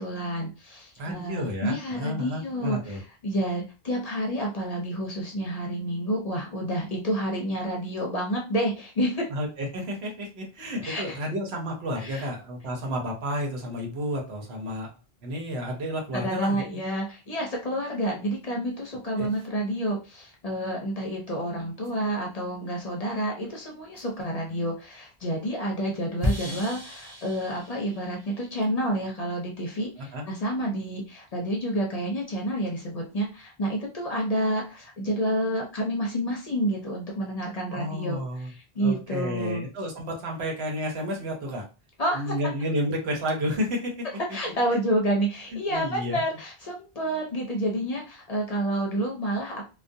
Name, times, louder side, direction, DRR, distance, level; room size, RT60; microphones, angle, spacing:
voice 1, 0.0-9.3 10.8-11.2 12.0-12.3 16.1-39.6 42.0-42.3 44.3-49.6, right 1 dB, 45° left, -1 dB, 0.6 m, -29 dB
voice 2, 1.0-3.0 9.3-14.9 15.2-16.6 19.2-19.3 26.4-26.6 30.0-30.2 37.7-38.5 38.8-41.7 42.1-44.1 44.7-44.8 45.5-46.2, equal, 80° right, 0 dB, 1.0 m, -31 dB
sound 1, 21.8-21.9 24.0-24.1 26.2-28.6, left 1 dB, 30° right, 0.5 m, -33 dB
2.4 x 2.2 x 2.6 m, 0.32 s
omnidirectional pair, 1.1 m